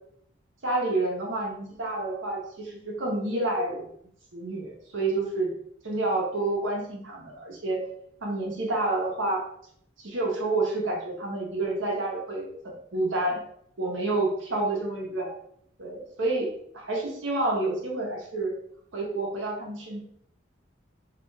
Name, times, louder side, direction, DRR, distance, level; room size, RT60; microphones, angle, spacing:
voice 1, 0.6-3.8 4.3-5.5 5.8-7.8 8.2-9.4 10.0-13.4 13.8-15.3 15.8-16.5 16.7-18.5 18.9-20.0, right 2 dB, 90° right, -1 dB, 0.8 m, -29 dB
2.4 x 2.2 x 3.1 m, 0.68 s
head